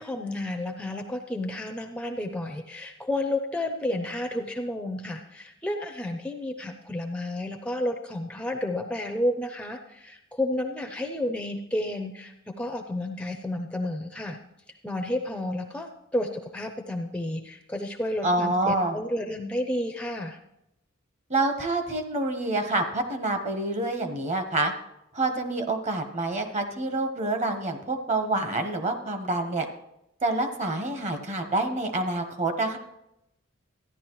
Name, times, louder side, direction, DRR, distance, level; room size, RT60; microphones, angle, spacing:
voice 1, 0.0-14.4 14.8-20.4, left 1 dB, 5° left, 4 dB, 0.5 m, -31 dB
voice 2, 18.2-19.0 21.3-24.7 25.1-29.6 30.2-32.8, right 2 dB, 35° right, 6 dB, 1.0 m, -27 dB
14.0 x 10.0 x 3.0 m, 0.84 s
head